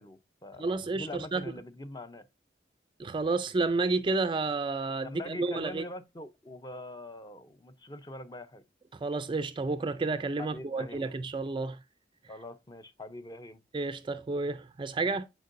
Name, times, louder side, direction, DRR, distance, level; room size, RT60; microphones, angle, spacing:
voice 1, 0.0-2.3 5.0-8.6 10.4-11.0 12.3-13.6, left 1 dB, 20° left, 0.6 m, -43 dB
voice 2, 0.6-1.5 3.0-5.8 8.9-11.8 13.7-15.2, right 3 dB, 25° right, 0.4 m, -31 dB
9.2 x 4.6 x 2.6 m
head